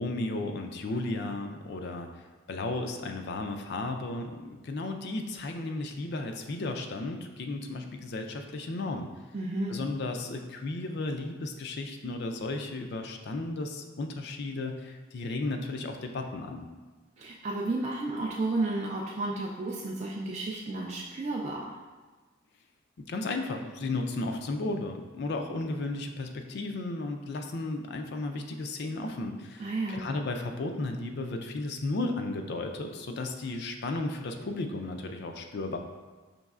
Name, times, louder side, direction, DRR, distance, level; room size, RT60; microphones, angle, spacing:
voice 1, 0.0-9.1 9.7-16.7 23.1-35.8, left 2 dB, 55° left, 4 dB, 0.4 m, -34 dB
voice 2, 9.3-9.7 17.2-21.7 29.6-30.1, right 2 dB, 35° right, -3 dB, 0.3 m, -32 dB
5.2 x 3.1 x 2.4 m, 1.3 s
head